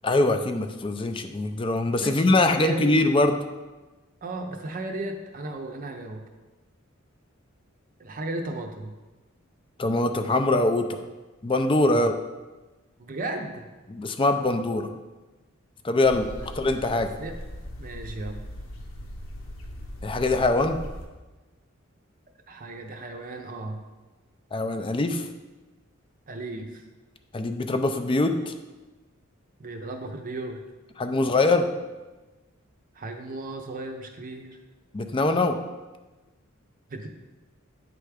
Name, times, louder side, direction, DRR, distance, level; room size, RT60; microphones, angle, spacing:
voice 1, 0.0-3.4 9.8-11.0 11.4-12.1 13.9-14.9 15.8-16.3 16.6-17.1 20.0-20.8 24.5-25.2 27.3-28.5 31.0-31.7 34.9-35.6, left 2 dB, 25° left, 7 dB, 0.4 m, -23 dB
voice 2, 2.0-2.9 4.2-6.2 8.0-8.9 11.9-12.1 13.0-13.7 17.0-17.4 17.8-18.4 22.5-23.8 26.3-26.8 29.6-30.6 32.9-34.6 36.9-37.1, right 2 dB, 40° right, 3 dB, 0.6 m, -35 dB
sound 1, 16.0-21.1, equal, 70° left, 0.9 m, -39 dB
9.1 x 3.4 x 4.9 m, 1.2 s
head